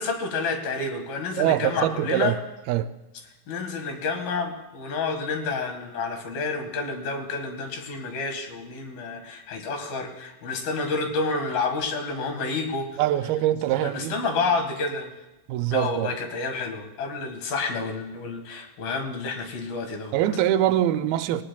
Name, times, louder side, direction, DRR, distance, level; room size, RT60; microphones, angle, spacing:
voice 1, 0.0-2.4 3.5-13.0 13.8-15.1 15.7-20.2, left 4 dB, 80° left, 3.6 m, -29 dB
voice 2, 1.4-2.4 2.7-2.9 13.0-14.1 15.5-16.1 20.1-21.4, right 12 dB, 90° right, 2.5 m, -23 dB
19.0 x 18.5 x 2.3 m
omnidirectional pair, 4.2 m